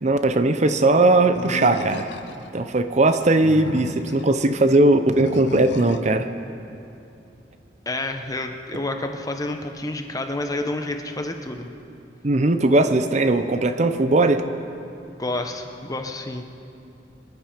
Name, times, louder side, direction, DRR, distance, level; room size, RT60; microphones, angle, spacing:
voice 1, 0.0-2.1 2.5-6.3 12.2-14.4, right 2 dB, 40° right, 9 dB, 0.7 m, -19 dB
Animal, 1.3-2.5 3.2-4.3 5.1-6.1, left 3 dB, 90° left, 0.8 m, -34 dB
voice 2, 7.9-11.7 15.2-16.4, left 2 dB, 20° left, 5 dB, 1.0 m, -29 dB
25.5 x 10.5 x 5.1 m, 2.7 s
head